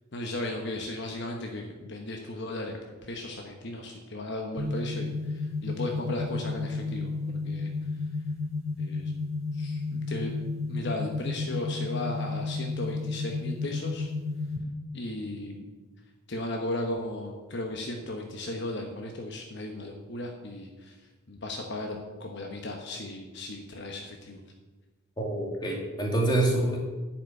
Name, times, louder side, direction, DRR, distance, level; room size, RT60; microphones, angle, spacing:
voice 1, 0.1-7.7 8.8-9.1 9.5-10.3 10.7-14.1 14.9-15.6 16.3-24.4, left 1 dB, 55° left, 2 dB, 1.1 m, -36 dB
sound 1, 4.6-14.6, left 3 dB, 75° right, 3.0 m, -32 dB
voice 2, 25.2-26.8, right 2 dB, 20° left, -1 dB, 2.5 m, -26 dB
10.5 x 6.0 x 8.2 m, 1.3 s
head